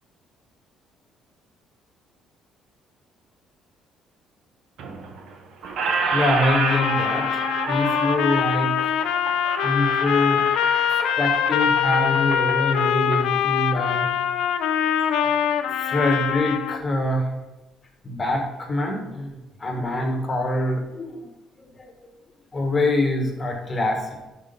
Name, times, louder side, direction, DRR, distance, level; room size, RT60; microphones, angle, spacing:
Squeak, 4.8-5.3 5.6-13.2, right 4 dB, 70° right, 0.9 m, -29 dB
voice 1, 6.1-8.9 9.6-10.4 11.2-14.1 15.8-17.3 18.0-19.3 19.6-21.2 21.7-21.9 22.5-24.0, left 1 dB, 25° left, 3 dB, 1.3 m, -24 dB
Trumpet, 6.4-16.8, left 9 dB, 80° left, 0.4 m, -23 dB
5.6 x 4.9 x 5.2 m, 1.0 s
cardioid pair, 105°, 0 cm